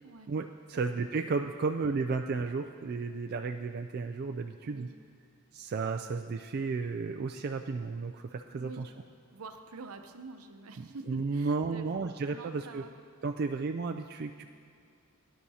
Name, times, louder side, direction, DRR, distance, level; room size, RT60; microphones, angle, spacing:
voice 1, 0.3-4.9 5.5-8.9 10.8-12.8 13.2-14.4, right 4 dB, 45° right, 5 dB, 0.3 m, -33 dB
voice 2, 4.6-4.9 8.5-8.8 9.3-11.9 12.3-12.9, right 4 dB, 75° right, 6 dB, 0.8 m, -46 dB
18.0 x 10.0 x 2.8 m, 2.4 s
head